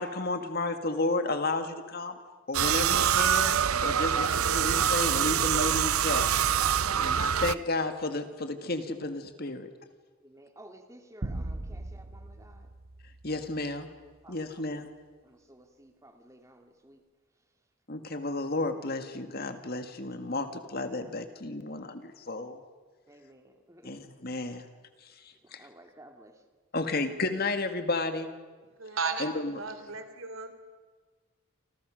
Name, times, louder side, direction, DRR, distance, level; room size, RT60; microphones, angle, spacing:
voice 1, 0.0-2.2 2.5-3.5 3.8-6.3 6.9-9.7 13.2-13.9 14.3-14.9 17.9-22.6 23.8-24.7 25.0-25.6 26.7-28.3 29.2-29.5, left 2 dB, 45° left, 8 dB, 2.0 m, -32 dB
sound 1, 2.5-7.5, right 8 dB, 90° right, 0.7 m, -25 dB
voice 2, 10.2-12.7 14.2-14.6 15.2-17.0 23.1-24.0 25.4-26.3, right 1 dB, 15° right, 4 dB, 2.3 m, -54 dB
sound 2, 11.2-13.8, right 1 dB, 45° right, 0.9 m, -39 dB
voice 3, 28.8-30.5, right 4 dB, 75° right, 9 dB, 3.2 m, -35 dB
29.0 x 26.5 x 6.5 m, 1.4 s
head